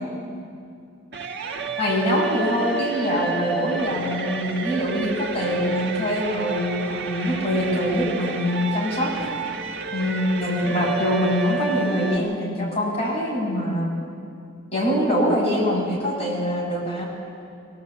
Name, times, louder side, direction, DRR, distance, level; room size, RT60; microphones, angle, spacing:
sound 1, 1.1-12.2, right 5 dB, 55° right, 1.8 m, -31 dB
voice 1, 1.8-9.1 9.9-13.9 14.7-17.1, equal, 30° left, -4 dB, 6.6 m, -24 dB
23.0 x 18.0 x 8.2 m, 2.4 s
head